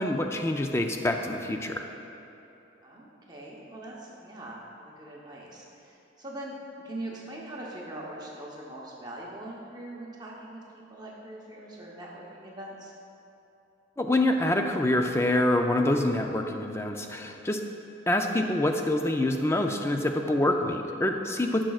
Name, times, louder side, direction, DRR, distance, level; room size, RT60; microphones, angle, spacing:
voice 1, 0.0-1.8 14.0-17.6 18.1-21.6, left 1 dB, 15° left, 4 dB, 0.3 m, -26 dB
voice 2, 2.8-6.6 6.8-12.9 20.7-20.8, right 1 dB, 20° right, -4 dB, 0.8 m, -42 dB
13.0 x 6.2 x 2.4 m, 2.9 s
head